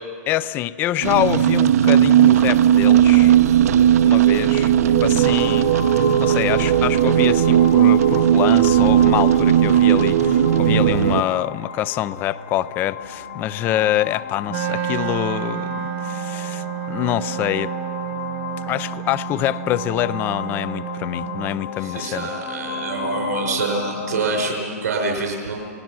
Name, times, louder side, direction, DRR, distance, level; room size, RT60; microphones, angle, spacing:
voice 1, 0.3-3.4 4.0-4.7 5.0-5.7 6.2-17.7 18.7-22.3, left 13 dB, 25° left, 0.4 m, -25 dB
sound 1, 1.0-11.2, right 11 dB, 70° right, 0.9 m, -16 dB
sound 2, 5.2-24.5, left 7 dB, 75° left, 3.1 m, -34 dB
Wind instrument woodwind instrument, 14.5-21.6, right 14 dB, 35° right, 1.1 m, -30 dB
voice 2, 21.8-25.5, right 3 dB, 90° right, 5.0 m, -25 dB
29.5 x 18.5 x 6.1 m
hypercardioid pair, 155°, 9 cm